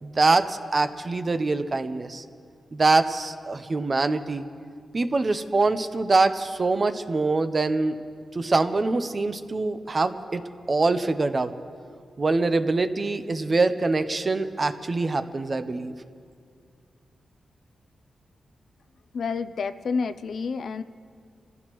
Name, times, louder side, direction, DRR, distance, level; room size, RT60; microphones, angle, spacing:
voice 1, 0.0-2.2 2.7-4.4 4.9-8.0 8.3-10.4 10.7-11.5 12.2-15.9, right 3 dB, 35° right, 10 dB, 0.7 m, -24 dB
voice 2, 19.1-20.8, left 5 dB, 65° left, 10 dB, 0.5 m, -29 dB
26.5 x 15.0 x 3.1 m, 2.2 s
wide cardioid pair, 110°, 0 cm